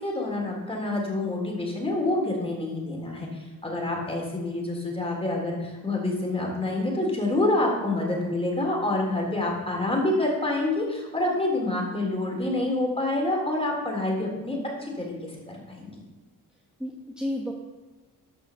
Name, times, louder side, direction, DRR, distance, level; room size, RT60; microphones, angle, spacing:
voice 1, 0.0-16.0, left 2 dB, 15° left, -1 dB, 3.4 m, -27 dB
voice 2, 16.5-17.5, left 1 dB, ahead, 0 dB, 1.3 m, -33 dB
12.5 x 5.6 x 7.0 m, 1.3 s
cardioid pair, 110°, 35 cm